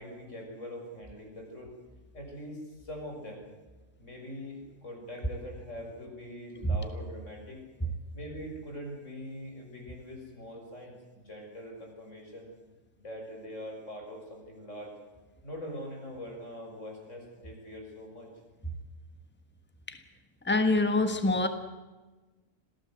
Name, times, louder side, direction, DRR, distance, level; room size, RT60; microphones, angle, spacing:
voice 1, 0.0-1.7 2.1-3.4 4.0-7.6 8.1-12.5 13.0-14.9 15.4-18.3, equal, 90° left, 1 dB, 7.1 m, -43 dB
voice 2, 20.4-21.5, left 2 dB, 10° left, 8 dB, 1.6 m, -25 dB
26.5 x 17.0 x 7.8 m, 1.2 s
omnidirectional pair, 1.2 m